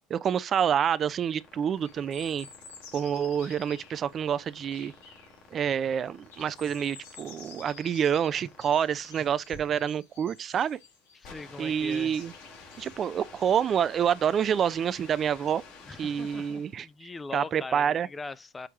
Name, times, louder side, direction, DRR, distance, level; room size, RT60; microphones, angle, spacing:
voice 1, 0.1-2.5 2.9-4.9 5.5-10.8 11.6-12.3 12.8-15.6 16.0-18.1, right 8 dB, 40° right, 0.4 m, -27 dB
sound 1, 0.9-16.8, left 4 dB, 60° left, 3.0 m, -51 dB
sound 2, 1.8-5.4 5.7-5.9 6.2-12.9, left 5 dB, 80° left, 2.6 m, -51 dB
voice 2, 11.1-12.1 15.9-18.7, left 3 dB, 20° left, 0.5 m, -41 dB
6.4 x 4.5 x 3.6 m
hypercardioid pair, 85°, 0 cm